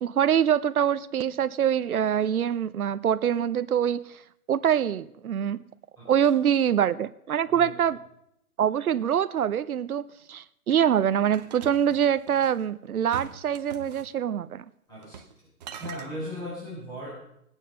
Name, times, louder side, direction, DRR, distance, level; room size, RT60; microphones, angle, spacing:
voice 1, 0.0-4.2 4.5-5.6 6.1-8.0 8.6-10.0 10.3-14.6, right 9 dB, 70° right, 0.8 m, -24 dB
voice 2, 6.0-6.6 7.5-7.7 14.9-15.5 15.8-17.1, equal, 10° left, 3.7 m, -38 dB
sound 1, 11.3-12.6 13.1-14.1 15.0-15.3 15.6-16.1, right 7 dB, 30° right, 1.0 m, -43 dB
21.5 x 9.1 x 5.5 m
hypercardioid pair, 155°, 44 cm